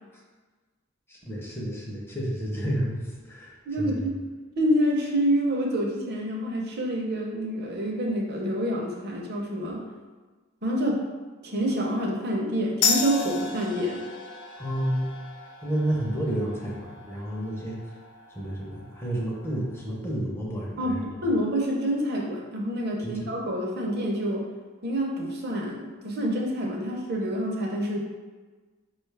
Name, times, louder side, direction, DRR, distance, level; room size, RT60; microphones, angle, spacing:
voice 1, 1.1-4.1 14.6-15.2 15.6-17.8 18.3-21.2 23.0-23.3, right 1 dB, 10° left, -3 dB, 0.7 m, -31 dB
voice 2, 3.7-4.2 4.6-9.8 10.6-11.0 11.4-14.0 20.8-24.4 24.8-28.0, equal, 50° right, -1 dB, 0.7 m, -27 dB
sound 1, 12.8-19.9, left 5 dB, 60° left, 0.4 m, -34 dB
4.9 x 2.3 x 3.3 m, 1.3 s
head